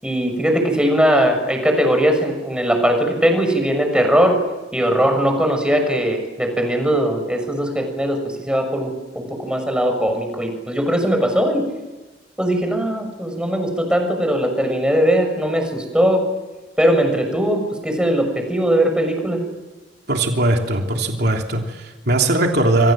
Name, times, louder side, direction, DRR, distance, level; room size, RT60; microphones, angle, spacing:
voice 1, 0.0-4.4 4.7-8.2 8.5-11.7 12.4-16.2 16.8-19.4, equal, 5° right, 4 dB, 6.7 m, -19 dB
voice 2, 20.1-22.9, right 2 dB, 60° right, 2 dB, 3.3 m, -19 dB
28.5 x 25.0 x 7.7 m, 1.2 s
head